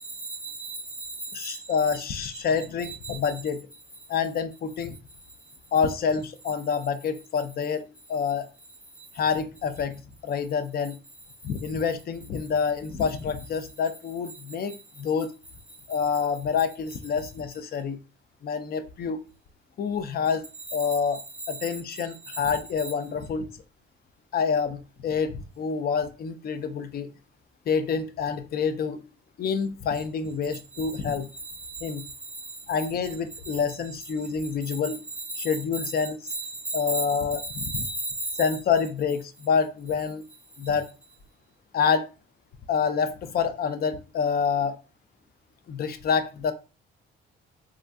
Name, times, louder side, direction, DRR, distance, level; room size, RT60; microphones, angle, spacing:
voice 1, 0.0-2.3 2.8-3.3 5.4-5.5 9.0-9.1 14.7-14.8 15.9-16.0 20.7-22.4 22.8-22.9 30.5-32.7 33.4-33.6 34.6-38.5, right 2 dB, 5° right, 0.8 m, -36 dB
voice 2, 1.3-3.7 4.1-4.9 5.7-8.5 9.1-11.0 11.4-15.3 15.9-18.0 18.4-19.2 19.8-20.4 20.7-21.2 21.5-23.5 24.3-27.1 27.7-29.0 29.4-31.3 31.8-32.0 32.7-35.0 35.4-36.2 36.7-37.8 38.4-40.2 40.6-40.9 41.7-42.1 42.7-44.8 45.7-46.5, left 6 dB, 50° left, 0.5 m, -27 dB
3.6 x 2.2 x 2.5 m
cardioid pair, 90°, 20 cm